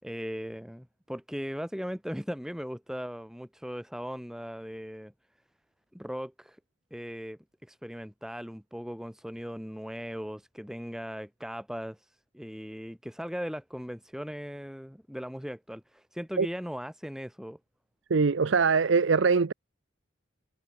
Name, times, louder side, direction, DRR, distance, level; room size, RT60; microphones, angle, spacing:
voice 1, 0.0-5.1 5.9-6.6 6.9-17.6, equal, 5° right, 5.5 m, -38 dB
voice 2, 18.1-19.5, right 5 dB, 70° right, 0.6 m, -22 dB
head